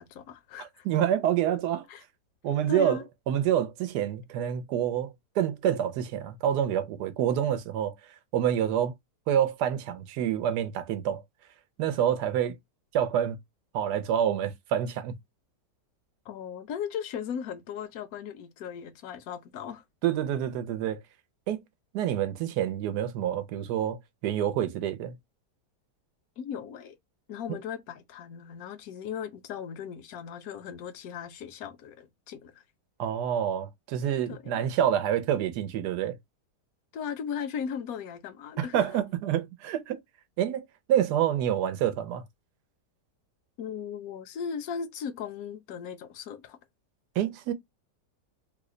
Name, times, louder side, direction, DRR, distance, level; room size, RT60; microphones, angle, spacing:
voice 1, 0.0-0.8 1.9-2.0 2.7-3.1 16.3-19.8 26.4-27.0 27.3-32.6 34.3-34.5 36.9-38.9 43.6-46.6, left 7 dB, 65° left, 1.0 m, -37 dB
voice 2, 0.6-1.8 2.4-3.0 3.3-7.9 8.3-8.9 9.3-11.2 11.8-12.6 12.9-13.4 13.7-15.2 20.0-21.0 21.5-21.6 21.9-25.1 33.0-36.2 38.6-40.0 40.4-42.2 47.2-47.5, right 10 dB, 75° right, 1.1 m, -27 dB
3.2 x 2.0 x 3.7 m
omnidirectional pair, 1.8 m